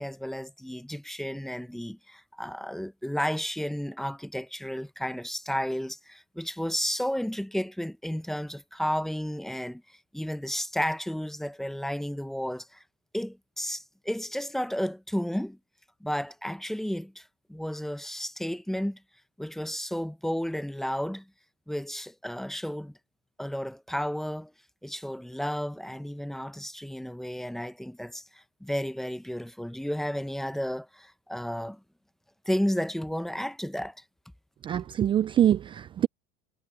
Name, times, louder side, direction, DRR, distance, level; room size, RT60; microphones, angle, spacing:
voice 1, 0.0-12.8 13.1-15.6 16.0-19.0 19.4-21.3 21.7-22.9 23.4-24.5 24.8-31.8 32.5-34.0, equal, ahead, 0.8 m, -32 dB
voice 2, 34.6-36.1, right 10 dB, 25° right, 0.4 m, -24 dB
supercardioid pair, 120°, 21 cm